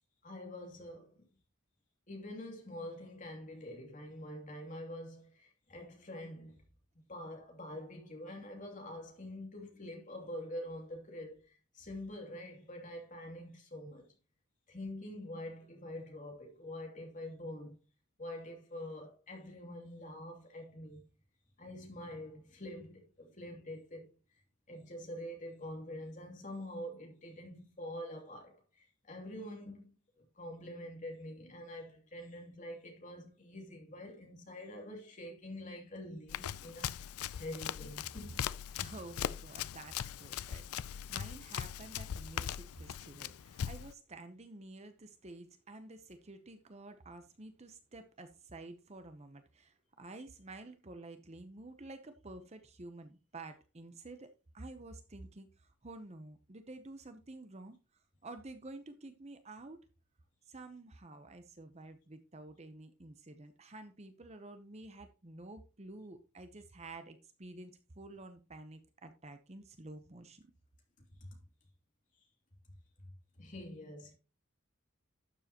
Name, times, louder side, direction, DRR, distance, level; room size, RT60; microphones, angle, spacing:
voice 1, 0.2-1.3 2.1-6.6 7.1-14.1 14.7-17.8 18.2-21.1 21.6-24.1 24.7-37.0 37.3-38.4 71.2-71.4 73.0-74.1, left 1 dB, 35° left, 2.7 m, -46 dB
Run, 36.3-43.9, left 9 dB, 85° left, 0.4 m, -40 dB
voice 2, 38.8-54.3 54.5-57.8 58.2-59.8 60.5-70.5, right 2 dB, 30° right, 0.8 m, -50 dB
12.0 x 7.4 x 2.9 m
head